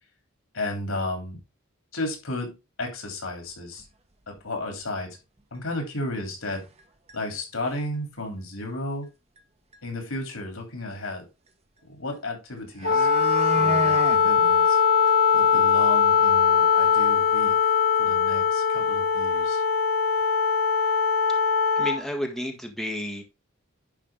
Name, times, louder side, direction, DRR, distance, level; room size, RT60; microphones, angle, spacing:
voice 1, 0.5-1.4 1.9-3.8 4.3-5.2 5.5-6.6 7.1-9.1 9.8-11.3 11.8-13.1 13.5-14.8 15.3-17.5 18.0-19.6, left 1 dB, 80° left, 3.3 m, -33 dB
sound 1, 3.8-3.9 4.4-4.5 4.8-4.9 5.9-6.0 6.5-6.8 7.1-7.2 7.5-7.9 9.4-9.5 9.7-9.8 12.1-12.2 12.6-14.2 14.6-14.7 15.1-15.2 15.6-15.7 16.0-16.1 18.9-19.0 19.3-19.5 20.2-20.3 20.8-21.0 21.2-22.0 22.4-22.5, right 3 dB, 30° right, 0.9 m, -33 dB
Wind instrument woodwind instrument, 12.8-22.0, left 6 dB, 50° left, 1.1 m, -21 dB
voice 2, 21.7-23.2, equal, ahead, 1.5 m, -31 dB
10.5 x 4.9 x 3.6 m
head